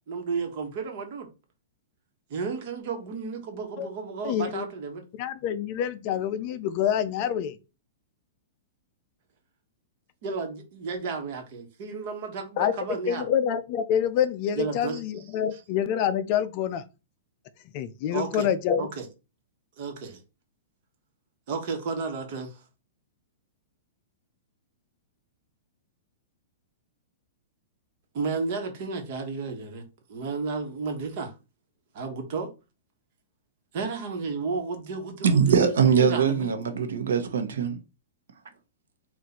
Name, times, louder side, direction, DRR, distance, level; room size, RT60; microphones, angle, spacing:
voice 1, 0.1-1.3 2.3-5.0 10.2-13.3 14.6-15.0 15.5-15.6 18.1-18.5 18.8-19.1 19.8-20.2 21.5-22.6 28.1-29.8 30.1-31.3 31.9-32.5 33.7-36.5, right 4 dB, 45° right, 1.2 m, -32 dB
voice 2, 4.2-4.7 5.2-7.6 12.6-12.7 13.1-16.8 17.7-18.9, left 9 dB, 40° left, 0.4 m, -27 dB
voice 3, 35.2-37.8, right 7 dB, 90° right, 0.9 m, -22 dB
4.0 x 2.5 x 4.2 m
hypercardioid pair, 160°, 0 cm